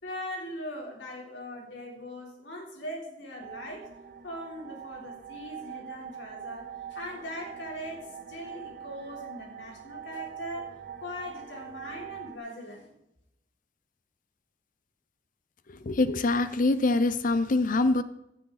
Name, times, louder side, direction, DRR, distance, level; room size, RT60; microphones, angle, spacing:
voice 1, 0.0-3.9 4.2-10.7 11.0-12.9, left 1 dB, 70° left, -1 dB, 3.7 m, -40 dB
sound 1, 3.4-12.4, right 8 dB, 55° right, 0.7 m, -43 dB
voice 2, 15.9-18.0, left 2 dB, 45° left, 13 dB, 0.6 m, -24 dB
16.0 x 8.3 x 4.1 m, 0.84 s
head